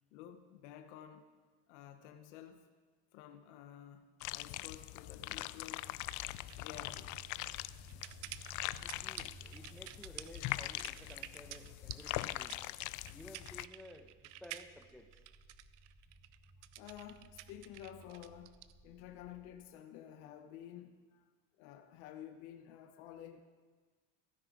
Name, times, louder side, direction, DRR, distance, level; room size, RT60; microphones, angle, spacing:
voice 1, 0.1-1.3 1.7-2.7 3.1-6.2 6.5-7.1 16.8-21.2 21.6-23.4, left 10 dB, 85° left, 7 dB, 1.0 m, -52 dB
sound 1, 4.2-13.7, left 18 dB, 60° left, 0.4 m, -42 dB
sound 2, 5.8-19.5, right 3 dB, 35° right, 3.7 m, -60 dB
sound 3, 6.0-18.7, right 15 dB, 90° right, 0.6 m, -51 dB
voice 2, 8.8-12.6 13.1-15.2, left 1 dB, ahead, 7 dB, 1.0 m, -55 dB
16.0 x 9.9 x 4.9 m, 1.4 s
supercardioid pair, 100°, 35 cm